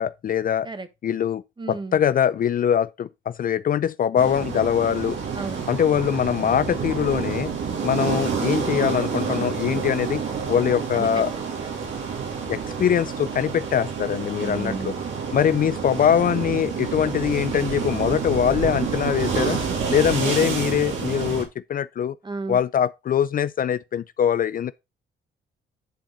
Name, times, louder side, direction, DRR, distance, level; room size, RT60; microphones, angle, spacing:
voice 1, 0.0-0.7 1.0-5.2 5.7-7.5 7.8-10.2 10.5-11.3 12.5-14.9 15.3-19.6 19.9-22.2 22.5-24.7, left 9 dB, 45° left, 0.4 m, -23 dB
voice 2, 1.6-2.0 5.3-5.7 10.9-11.7 14.4-15.0 22.2-22.6, right 3 dB, 25° right, 1.3 m, -33 dB
sound 1, 4.2-21.4, right 6 dB, 75° right, 3.2 m, -28 dB
10.5 x 4.4 x 3.9 m
cardioid pair, 90°, 20 cm